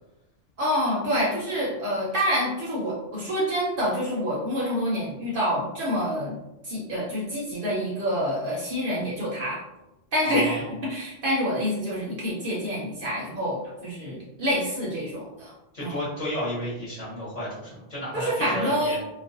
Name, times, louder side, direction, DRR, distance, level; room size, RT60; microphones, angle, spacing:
voice 1, 0.6-6.4 6.6-9.6 10.1-15.5 15.8-16.0 18.1-19.0, equal, 55° right, -5 dB, 0.7 m, -27 dB
voice 2, 10.3-10.7 15.7-19.0, left 1 dB, 35° left, -9 dB, 0.9 m, -32 dB
2.3 x 2.1 x 2.5 m, 0.95 s
omnidirectional pair, 1.2 m